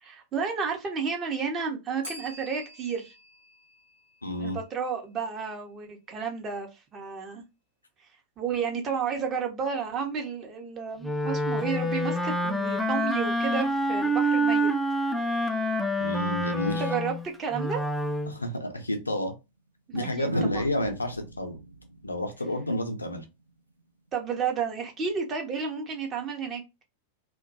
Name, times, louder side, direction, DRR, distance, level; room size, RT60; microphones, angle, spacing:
voice 1, 0.0-3.1 4.4-7.4 8.4-14.7 16.7-17.8 19.9-20.7 24.1-26.6, right 6 dB, 25° right, 0.6 m, -32 dB
Bell, 2.0-4.8, equal, 65° right, 0.7 m, -47 dB
voice 2, 4.2-4.6 16.0-16.8 18.3-19.3 19.9-21.6 22.0-23.2, left 1 dB, 80° left, 0.5 m, -30 dB
Wind instrument woodwind instrument, 11.0-18.4, equal, ahead, 0.3 m, -27 dB
sound 1, 18.6-18.8 20.2-23.2 24.8-25.1, right 1 dB, 85° right, 0.3 m, -35 dB
2.2 x 2.1 x 2.6 m
figure-of-eight pair, 90°, 0 cm